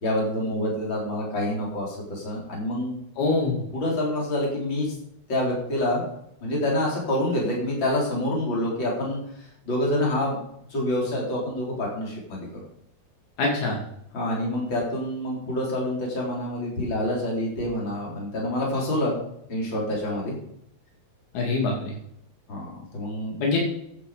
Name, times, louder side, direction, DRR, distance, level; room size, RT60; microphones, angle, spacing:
voice 1, 0.0-2.9 3.7-4.9 5.3-6.0 6.4-10.4 10.7-12.5 14.1-19.2 19.5-20.4 22.5-23.4, left 1 dB, 40° left, -2 dB, 4.6 m, -27 dB
voice 2, 3.2-3.6 13.4-13.8 21.3-21.9 23.4-23.6, left 3 dB, 85° left, -2 dB, 3.9 m, -24 dB
14.0 x 8.6 x 5.1 m, 0.74 s
omnidirectional pair, 3.3 m